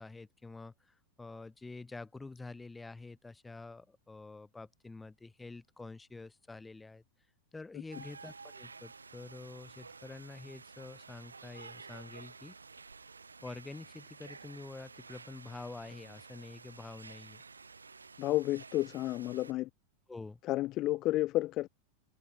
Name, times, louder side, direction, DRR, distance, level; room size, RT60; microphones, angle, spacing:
voice 1, 0.0-7.0 7.5-12.6 13.4-17.4 20.1-20.4, left 3 dB, 10° left, 1.3 m, -47 dB
sound 1, 7.9-19.5, right 4 dB, 75° right, 2.4 m, -52 dB
voice 2, 18.2-19.7 20.5-21.7, left 16 dB, 35° left, 0.5 m, -31 dB
figure-of-eight pair, 90°, 0 cm